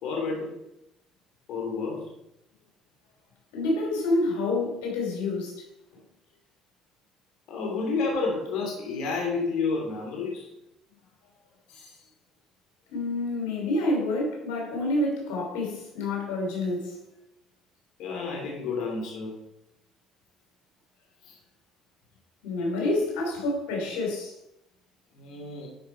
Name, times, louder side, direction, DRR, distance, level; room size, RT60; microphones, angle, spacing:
voice 1, 0.0-0.5 1.5-2.1 7.5-10.5 18.0-19.4 21.2-21.4 25.1-25.7, left 4 dB, 70° left, 2.6 m, -30 dB
voice 2, 3.5-5.6 11.7-11.9 12.9-17.0 22.4-24.3, left 2 dB, 90° left, 3.1 m, -28 dB
11.0 x 5.6 x 4.4 m
supercardioid pair, 90°, 0 cm